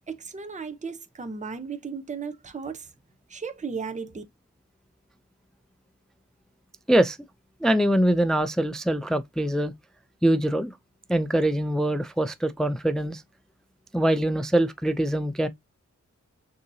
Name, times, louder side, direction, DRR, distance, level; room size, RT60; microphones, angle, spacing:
voice 1, 0.1-2.9 3.3-4.2, right 5 dB, 25° right, 0.7 m, -35 dB
voice 2, 7.6-9.7 10.2-10.7 11.1-13.2 13.9-15.5, right 1 dB, ahead, 0.4 m, -23 dB
6.4 x 2.8 x 2.7 m
wide cardioid pair, 100°, 29 cm